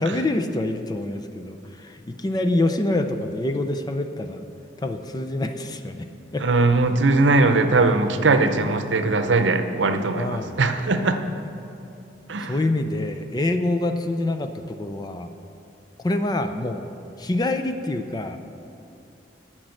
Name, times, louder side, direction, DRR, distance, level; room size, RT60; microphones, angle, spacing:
voice 1, 0.0-4.5 4.8-6.1 6.3-6.4 10.2-10.6 12.4-15.3 16.0-16.9 17.2-18.4, left 2 dB, 20° left, 7 dB, 0.5 m, -26 dB
voice 2, 6.4-11.2 12.3-12.5, right 3 dB, 90° right, 8 dB, 0.7 m, -20 dB
10.5 x 6.1 x 7.8 m, 2.7 s
head